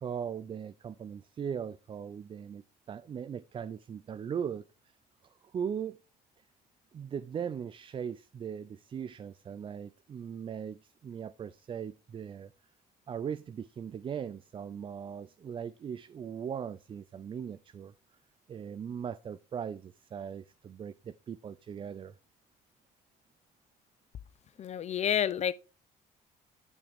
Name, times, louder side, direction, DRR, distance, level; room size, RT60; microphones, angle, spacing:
voice 1, 0.0-2.6 2.9-5.0 5.5-6.0 6.9-12.5 13.1-17.9 18.5-22.1, right 7 dB, 30° right, 0.4 m, -39 dB
voice 2, 24.6-25.5, left 9 dB, 40° left, 0.6 m, -29 dB
10.5 x 6.2 x 3.4 m
cardioid pair, 110°, 17 cm